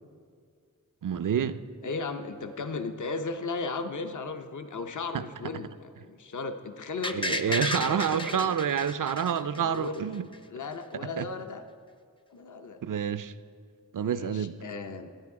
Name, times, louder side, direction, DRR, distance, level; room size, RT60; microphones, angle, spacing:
voice 1, 1.0-1.6 5.1-5.2 7.1-10.3 11.2-11.3 12.8-13.3 13.9-14.6, right 8 dB, 70° right, 13 dB, 0.5 m, -28 dB
voice 2, 1.8-8.6 9.6-10.1 10.5-11.6 12.3-12.8 14.0-15.1, left 4 dB, 60° left, 7 dB, 0.6 m, -36 dB
sound 1, 7.0-10.0 10.3-10.4, left 2 dB, 15° left, 0.5 m, -33 dB
13.0 x 9.4 x 4.7 m, 2.1 s
wide cardioid pair, 65°, 33 cm